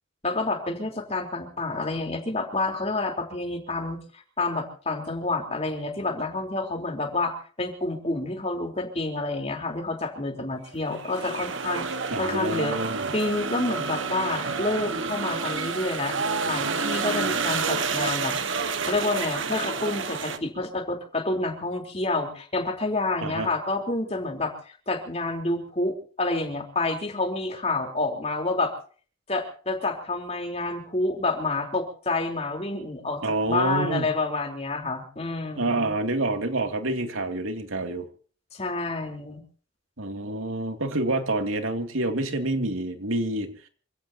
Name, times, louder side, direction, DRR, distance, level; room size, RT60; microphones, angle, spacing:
voice 1, 0.2-4.0 4.4-11.9 12.2-12.8 13.1-16.2 16.4-18.4 18.8-28.7 29.3-33.2 33.5-35.9 38.5-39.4, left 2 dB, 30° left, 3 dB, 3.9 m, -28 dB
sound 1, 10.8-20.4, right 4 dB, 70° right, 1.6 m, -29 dB
voice 2, 12.1-13.1 23.2-23.5 33.2-34.1 35.6-38.1 40.0-43.6, right 2 dB, 85° right, 5 dB, 2.7 m, -27 dB
27.5 x 17.0 x 2.9 m, 0.43 s
head